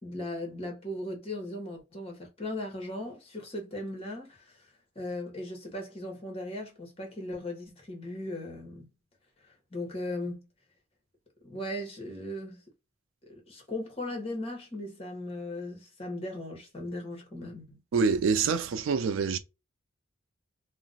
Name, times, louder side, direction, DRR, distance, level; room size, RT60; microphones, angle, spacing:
voice 1, 0.0-8.9 9.4-10.4 11.4-12.6 13.3-17.8, left 1 dB, 30° left, 0.9 m, -38 dB
voice 2, 17.9-19.4, right 5 dB, 65° right, 0.3 m, -26 dB
2.4 x 2.0 x 3.9 m
head